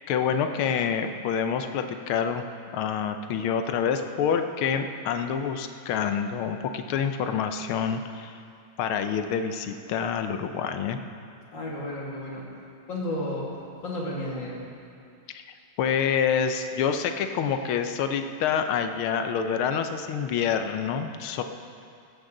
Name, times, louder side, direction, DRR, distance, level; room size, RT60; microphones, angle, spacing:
voice 1, 0.1-2.4 2.7-8.4 8.8-11.0 15.8-21.4, left 7 dB, 80° left, 7 dB, 1.6 m, -27 dB
voice 2, 11.5-12.4 12.9-13.5 13.8-14.6, left 1 dB, 60° left, -4 dB, 3.1 m, -32 dB
15.5 x 14.5 x 3.9 m, 2.4 s
omnidirectional pair, 2.3 m